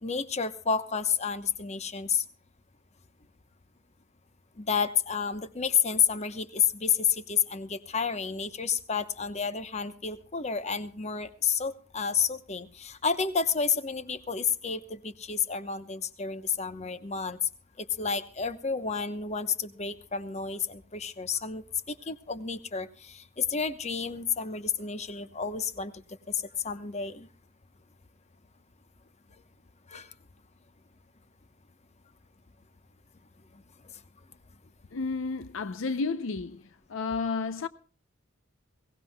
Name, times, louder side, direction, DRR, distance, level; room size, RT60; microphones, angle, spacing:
voice 1, 0.0-2.2 4.6-17.4 17.8-27.3 29.9-30.1 33.8-33.9, left 6 dB, 30° left, 0.9 m, -30 dB
voice 2, 34.9-36.6 36.9-37.7, left 4 dB, 65° left, 0.6 m, -31 dB
22.0 x 18.0 x 2.2 m
head